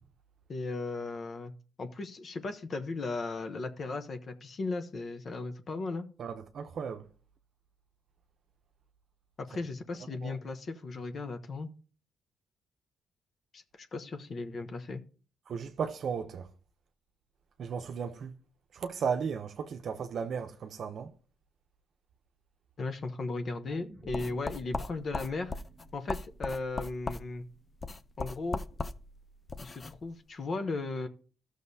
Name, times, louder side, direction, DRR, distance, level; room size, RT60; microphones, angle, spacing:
voice 1, 0.5-1.5 1.8-6.1 9.4-11.7 13.5-15.0 22.8-25.5 25.9-27.4 28.2-28.6 29.6-31.1, left 3 dB, 45° left, 0.9 m, -36 dB
voice 2, 6.2-7.1 10.1-10.4 15.5-16.5 17.6-18.3 18.7-21.1, right 6 dB, 60° right, 0.7 m, -35 dB
sound 1, 23.6-28.1 28.6-28.7, right 1 dB, 10° right, 1.7 m, -54 dB
sound 2, 24.1-30.0, left 3 dB, 30° left, 0.5 m, -39 dB
13.5 x 6.5 x 2.7 m
cardioid pair, 105°, 0 cm